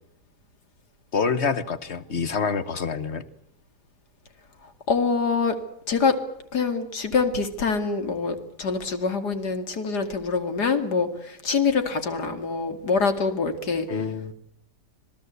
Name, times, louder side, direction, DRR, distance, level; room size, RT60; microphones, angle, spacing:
voice 1, 1.1-3.2 13.9-14.3, left 5 dB, 40° left, 12 dB, 1.6 m, -26 dB
voice 2, 4.9-5.6 5.9-6.2 6.5-13.9, left 5 dB, 70° left, 8 dB, 3.0 m, -25 dB
27.0 x 18.5 x 8.3 m, 0.72 s
omnidirectional pair, 1.8 m